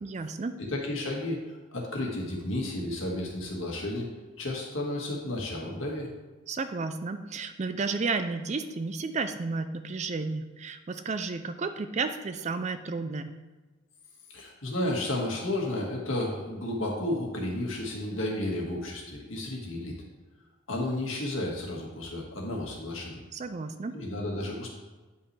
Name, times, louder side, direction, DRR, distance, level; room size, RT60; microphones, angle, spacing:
voice 1, 0.0-0.5 6.5-13.3 23.3-24.0, right 4 dB, 35° right, 9 dB, 0.4 m, -32 dB
voice 2, 0.6-4.1 4.4-6.1 14.3-20.0 20.7-23.2 23.9-24.7, left 1 dB, 75° left, -1 dB, 1.7 m, -32 dB
9.4 x 5.6 x 3.3 m, 1.2 s
head